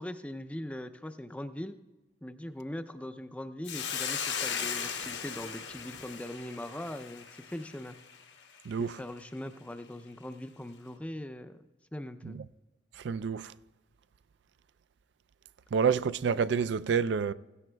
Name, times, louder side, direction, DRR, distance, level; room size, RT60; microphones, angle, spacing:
voice 1, 0.0-1.8 2.2-8.0 8.8-11.6 11.9-12.4, left 1 dB, 5° left, 0.4 m, -41 dB
Hiss, 3.6-8.2, left 7 dB, 65° left, 1.2 m, -37 dB
voice 2, 8.7-9.0 12.2-12.3 13.0-13.5 15.7-17.3, right 6 dB, 65° right, 0.4 m, -28 dB
16.5 x 16.0 x 2.2 m
head